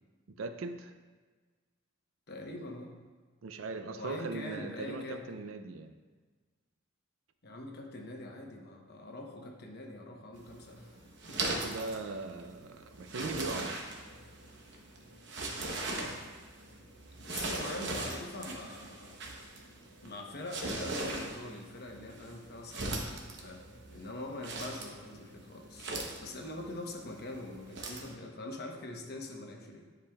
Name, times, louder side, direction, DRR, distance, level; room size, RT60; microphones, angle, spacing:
voice 1, 0.4-0.9 3.4-5.9 11.4-13.8, right 3 dB, 80° right, 8 dB, 0.5 m, -40 dB
voice 2, 2.3-2.9 3.9-5.3 7.4-11.0 11.3-11.4 12.1-12.2 17.2-19.2 20.0-25.9 26.2-29.9, left 2 dB, 55° left, 1 dB, 0.9 m, -43 dB
sound 1, 10.3-28.1, right 2 dB, 60° right, 0.9 m, -40 dB
10.0 x 5.0 x 2.3 m, 1.4 s
head